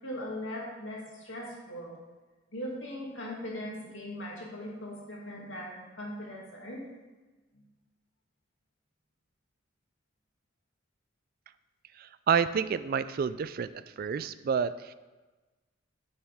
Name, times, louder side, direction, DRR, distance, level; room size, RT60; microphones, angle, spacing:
voice 1, 0.0-1.9 2.5-6.9, equal, 70° left, -3 dB, 2.5 m, -39 dB
voice 2, 12.0-13.7 14.0-14.9, right 7 dB, 50° right, 14 dB, 0.3 m, -29 dB
11.0 x 7.2 x 3.6 m, 1.2 s
head